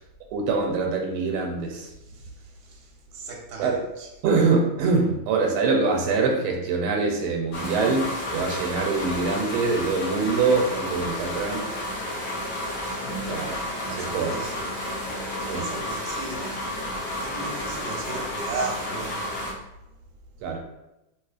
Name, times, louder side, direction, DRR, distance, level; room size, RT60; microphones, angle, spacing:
voice 1, 0.3-1.9 3.6-3.8 4.2-11.7 13.3-13.6 13.8-14.4 15.5-15.7 20.4-20.6, right 4 dB, 85° right, 1.5 m, -24 dB
voice 2, 2.0-4.1 13.5-13.6 13.9-14.7 15.3-16.6 16.9-19.2, right 3 dB, 65° right, 1.0 m, -37 dB
sound 1, 7.5-19.5, left 1 dB, 80° left, 0.6 m, -31 dB
3.2 x 2.9 x 2.4 m
omnidirectional pair, 2.4 m